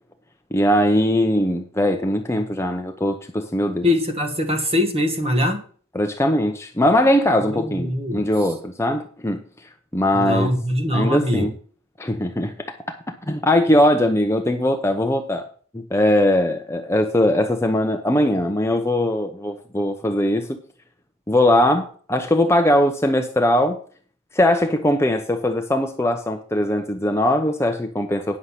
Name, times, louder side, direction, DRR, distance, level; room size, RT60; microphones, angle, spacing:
voice 1, 0.5-3.9 5.9-9.4 9.9-10.5 10.9-11.5 12.0-13.0 13.3-15.5 15.7-20.6 21.3-23.8 24.3-28.4, left 1 dB, 15° left, 0.8 m, -20 dB
voice 2, 3.8-5.6 7.5-8.2 10.1-11.5, left 1 dB, 30° right, 1.5 m, -22 dB
9.8 x 6.6 x 5.7 m
head